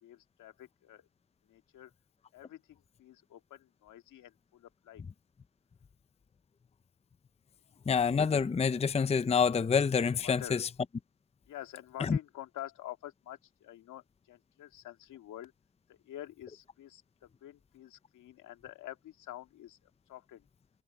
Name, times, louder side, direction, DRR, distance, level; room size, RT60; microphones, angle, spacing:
voice 1, 0.0-1.0 1.5-1.9 2.3-5.0 10.2-10.6 11.5-15.5 15.9-20.5, left 13 dB, 80° left, 2.0 m, -48 dB
voice 2, 7.9-10.7 12.0-12.2, left 6 dB, 20° left, 0.6 m, -27 dB
cardioid pair, 90°, 30 cm